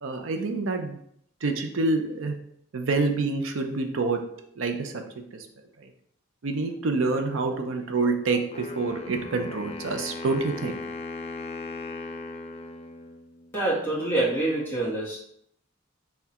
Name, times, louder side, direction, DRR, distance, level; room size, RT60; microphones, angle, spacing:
voice 1, 0.0-1.0 1.4-2.4 2.7-4.2 4.6-5.0 5.3-5.5 5.8-5.9 6.4-10.7, right 3 dB, 75° right, 5 dB, 0.5 m, -27 dB
Wind instrument woodwind instrument, 8.5-13.5, left 3 dB, 30° left, 0.3 m, -38 dB
voice 2, 13.5-15.2, right 2 dB, 10° left, -8 dB, 1.2 m, -26 dB
5.6 x 2.2 x 2.9 m, 0.70 s
head